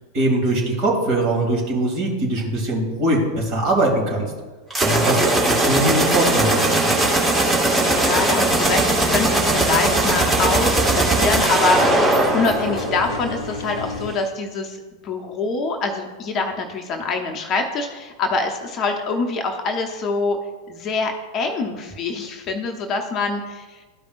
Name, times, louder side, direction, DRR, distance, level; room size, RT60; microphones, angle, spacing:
voice 1, 0.1-4.3 4.8-7.0, right 1 dB, 40° right, -1 dB, 2.5 m, -21 dB
sound 1, 4.7-13.3, right 2 dB, 10° right, 1.8 m, -19 dB
voice 2, 5.0-5.4 7.8-14.8 15.0-20.4 20.7-23.8, left 3 dB, 30° left, 3 dB, 0.8 m, -25 dB
sound 2, 7.8-14.1, left 3 dB, 70° left, 0.6 m, -33 dB
13.0 x 5.1 x 2.5 m, 1.3 s
figure-of-eight pair, 90°, 0 cm